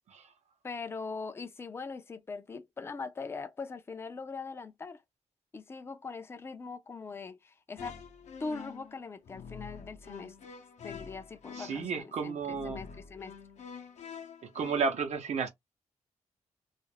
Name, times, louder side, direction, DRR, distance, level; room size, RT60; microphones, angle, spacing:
voice 1, 0.6-5.0 5.5-8.0 8.4-10.4 10.8-13.4, left 4 dB, 20° left, 0.4 m, -41 dB
sound 1, 7.8-14.8, left 6 dB, 70° left, 0.6 m, -47 dB
voice 2, 11.6-12.8 14.4-15.5, right 5 dB, 70° right, 0.7 m, -32 dB
2.4 x 2.0 x 3.1 m
wide cardioid pair, 150°, 12 cm